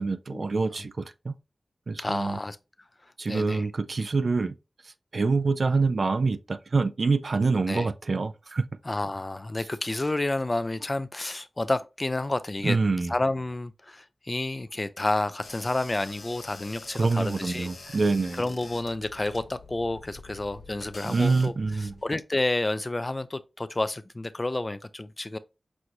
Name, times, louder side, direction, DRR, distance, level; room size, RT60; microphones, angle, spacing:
voice 1, 0.0-1.4 1.9-2.4 3.2-4.6 4.8-8.6 12.6-13.1 17.0-18.4 21.0-22.0, right 3 dB, 70° right, 0.4 m, -26 dB
voice 2, 2.0-2.6 3.3-3.7 7.7-7.9 8.9-12.8 13.1-17.7 18.4-21.5 21.8-25.4, left 2 dB, 35° left, 0.4 m, -30 dB
sound 1, 15.4-22.1, left 3 dB, 80° left, 0.9 m, -46 dB
6.1 x 2.6 x 2.8 m
wide cardioid pair, 55°, 0 cm